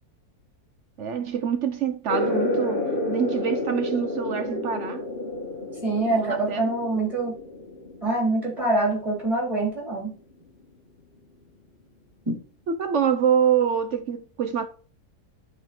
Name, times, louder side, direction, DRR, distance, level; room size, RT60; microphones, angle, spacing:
voice 1, 1.0-5.0 6.1-6.6 12.7-14.7, right 8 dB, 60° right, 0.8 m, -25 dB
sound 1, 2.1-9.2, left 1 dB, 35° left, 1.4 m, -30 dB
voice 2, 5.8-7.4 8.0-10.1 12.3-12.4, right 2 dB, 20° right, 3.6 m, -25 dB
11.5 x 4.1 x 4.4 m
omnidirectional pair, 1.7 m